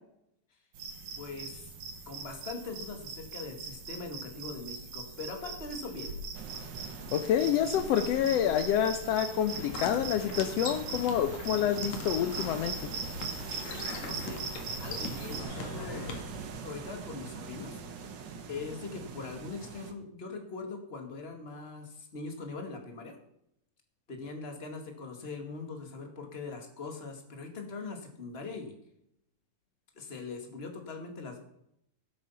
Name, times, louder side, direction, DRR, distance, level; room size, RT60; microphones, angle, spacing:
sound 1, 0.7-15.4, right 4 dB, 80° right, 3.8 m, -41 dB
voice 1, 1.2-1.7 2.1-6.1 14.0-14.4 14.8-16.2 16.6-17.8 18.5-23.1 24.1-28.7 29.9-31.4, left 4 dB, 25° left, 4 dB, 1.8 m, -41 dB
sound 2, 6.3-19.9, right 5 dB, 60° right, 1.1 m, -44 dB
voice 2, 7.1-12.9, left 9 dB, 85° left, 9 dB, 1.4 m, -28 dB
sound 3, 9.5-16.2, left 3 dB, 60° left, 2.9 m, -41 dB
16.5 x 8.5 x 5.7 m, 0.77 s
omnidirectional pair, 3.8 m